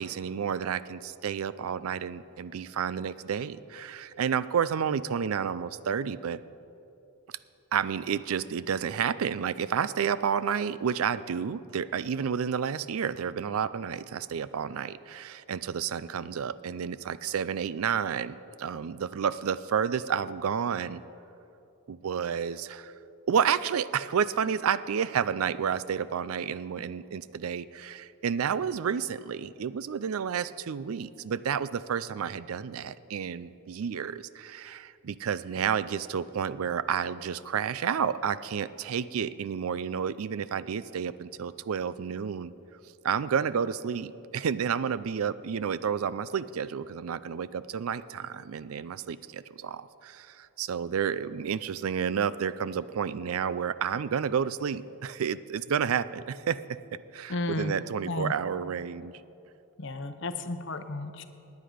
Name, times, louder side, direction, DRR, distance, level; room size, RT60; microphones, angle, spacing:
voice 1, 0.0-6.4 7.7-21.0 21.9-22.9 23.3-42.5 43.0-56.8 57.1-59.1, right 7 dB, 80° right, 16 dB, 0.4 m, -30 dB
voice 2, 57.3-57.7 58.1-58.3 59.8-61.2, left 2 dB, 55° left, 9 dB, 0.7 m, -33 dB
18.0 x 9.5 x 5.0 m, 2.8 s
head